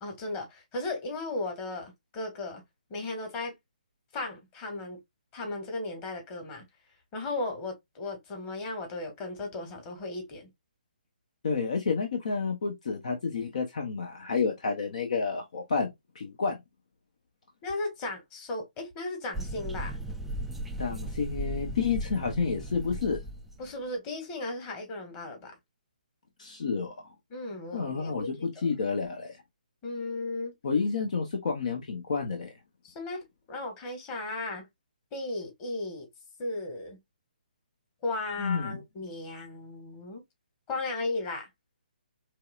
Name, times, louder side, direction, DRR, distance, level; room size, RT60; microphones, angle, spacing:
voice 1, 0.0-2.6 2.9-3.5 4.1-5.0 5.3-6.7 7.1-10.5 17.6-20.0 23.6-25.5 27.3-28.1 28.5-28.7 29.8-30.5 32.8-34.7 35.1-36.1 36.4-37.0 38.0-40.2 40.7-41.5, left 2 dB, 20° left, 1.5 m, -35 dB
voice 2, 11.4-16.6 20.8-23.2 26.4-27.1 27.7-29.4 30.6-32.5 38.4-38.8, left 5 dB, 50° left, 0.9 m, -30 dB
sound 1, 19.3-23.7, right 1 dB, 5° right, 0.3 m, -36 dB
4.6 x 3.1 x 2.4 m
figure-of-eight pair, 135°, 5 cm